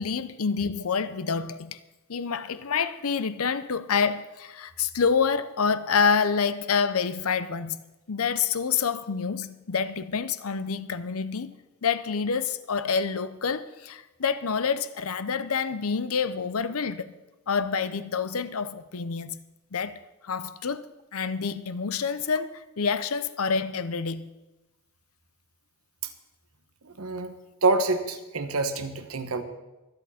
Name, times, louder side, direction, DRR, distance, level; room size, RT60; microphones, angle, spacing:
voice 1, 0.0-1.8 2.1-7.8 8.1-17.1 17.5-19.4 19.7-20.9 21.1-24.3, left 5 dB, 75° left, 0.7 m, -27 dB
voice 2, 26.8-27.3 27.6-29.4, right 3 dB, 75° right, 1.2 m, -26 dB
24.5 x 8.7 x 4.3 m
head